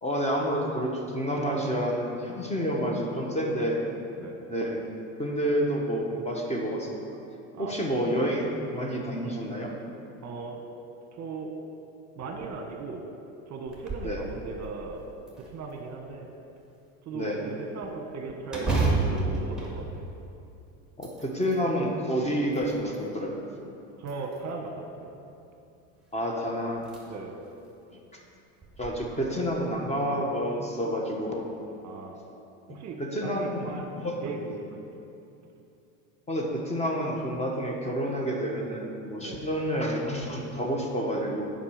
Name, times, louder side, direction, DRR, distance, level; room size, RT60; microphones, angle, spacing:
voice 1, 0.0-3.8 4.5-4.8 5.2-7.1 7.6-9.7 14.0-14.2 17.1-17.5 21.0-23.4 26.1-26.8 28.8-31.5 32.7-33.7 34.0-34.1 34.4-34.5 36.3-41.5, equal, 15° left, -1 dB, 1.2 m, -29 dB
voice 2, 7.5-7.9 8.3-8.5 10.2-10.6 11.1-11.5 12.2-13.1 13.5-15.0 15.3-16.3 17.0-20.0 24.0-25.1 27.1-27.4 31.8-32.2 32.7-33.9 34.2-34.8 39.2-39.5, right 4 dB, 40° right, 2 dB, 1.1 m, -38 dB
sound 1, 13.7-14.2 14.6-14.7 15.3-16.1 18.5-20.5 20.9-21.6 22.2-23.1 24.0-24.7 26.1-26.2 26.8-27.0 27.5-27.6 28.6-28.9, right 3 dB, ahead, 1.8 m, -30 dB
7.2 x 5.4 x 6.4 m, 2.7 s
supercardioid pair, 100°, 40 cm